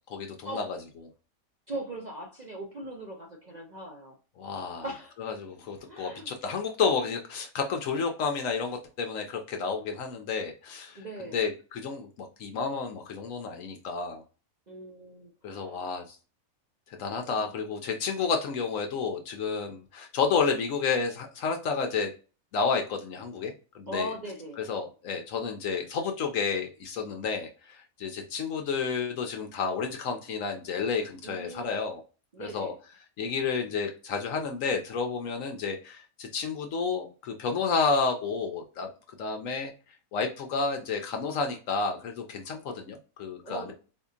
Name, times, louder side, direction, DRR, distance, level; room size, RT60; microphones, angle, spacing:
voice 1, 0.1-0.6 4.4-4.8 5.4-11.0 11.3-14.2 15.4-16.2 17.0-22.1 22.5-24.1 24.6-32.0 32.4-32.7 33.2-38.9 39.2-39.7 40.1-43.7, left 5 dB, 70° left, 4 dB, 1.0 m, -31 dB
voice 2, 1.7-4.2 4.8-5.2 5.9-6.3 11.0-11.5 14.7-16.0 17.3-17.5 23.9-24.6 31.2-31.8 32.3-32.8 43.4-43.7, right 1 dB, 45° right, -1 dB, 0.6 m, -40 dB
4.2 x 2.7 x 2.3 m, 0.34 s
omnidirectional pair, 1.5 m